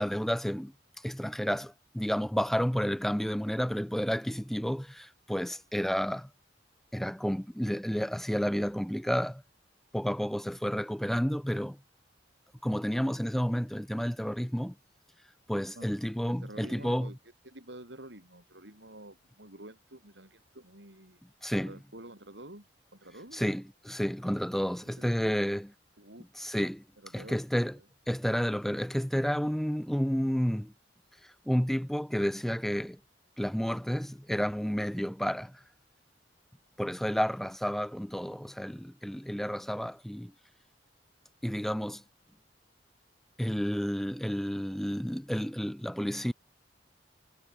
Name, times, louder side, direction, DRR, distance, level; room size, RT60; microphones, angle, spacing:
voice 1, 0.0-6.3 6.9-9.4 9.9-11.8 12.6-14.7 15.5-17.1 21.4-21.7 23.3-25.7 26.4-26.8 27.1-27.8 28.1-30.7 31.2-33.0 33.4-35.6 36.8-40.3 41.4-42.0 43.4-46.3, equal, ahead, 0.5 m, -31 dB
voice 2, 15.7-17.2 17.4-21.2 21.6-23.4 24.8-25.4 26.0-26.3 27.0-27.4 27.7-27.9, right 1 dB, 75° right, 7.6 m, -49 dB
head